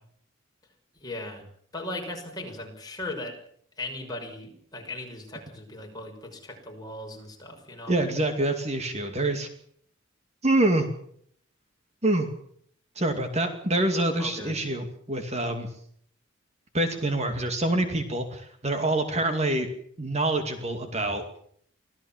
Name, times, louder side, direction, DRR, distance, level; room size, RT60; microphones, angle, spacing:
voice 1, 1.0-1.4 1.7-3.4 3.8-7.9 14.2-14.6, left 2 dB, 20° left, 1 dB, 6.0 m, -38 dB
voice 2, 7.9-9.5 10.4-10.9 12.0-12.3 13.0-15.7 16.7-19.7 20.0-21.2, right 2 dB, 35° right, 6 dB, 2.4 m, -26 dB
25.5 x 16.5 x 7.4 m, 0.64 s
head